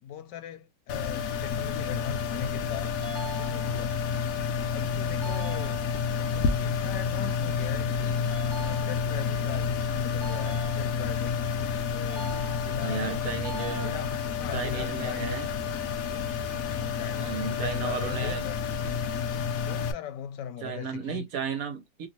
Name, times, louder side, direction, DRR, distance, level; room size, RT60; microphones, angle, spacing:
voice 1, 0.0-3.0 3.4-4.0 4.7-8.3 8.6-11.4 11.8-13.3 13.8-15.4 16.7-18.6 19.6-21.3, left 9 dB, 85° left, 1.2 m, -39 dB
sound 1, 0.9-19.9, left 6 dB, 65° left, 0.9 m, -30 dB
sound 2, 3.0-4.0 5.2-6.2 8.3-9.3 10.2-11.3 12.1-13.0 13.4-14.4, right 2 dB, 30° right, 0.4 m, -43 dB
voice 2, 12.8-13.9 14.5-15.5 17.2-18.4 20.6-22.1, right 7 dB, 60° right, 1.1 m, -34 dB
2.9 x 2.6 x 2.8 m
omnidirectional pair, 1.8 m